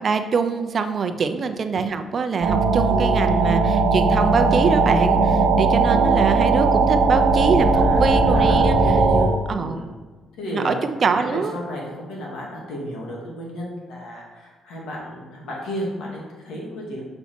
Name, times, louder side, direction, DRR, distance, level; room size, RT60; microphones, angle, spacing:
voice 1, 0.0-8.8 9.5-9.8 10.5-11.6, right 5 dB, 45° right, 8 dB, 0.6 m, -24 dB
sound 1, 2.4-9.3, right 3 dB, 85° right, 0.9 m, -18 dB
voice 2, 7.5-9.9 10.4-10.7 11.1-17.0, equal, 80° left, -2 dB, 2.0 m, -33 dB
7.1 x 4.3 x 4.4 m, 1.3 s
cardioid pair, 90°, 0 cm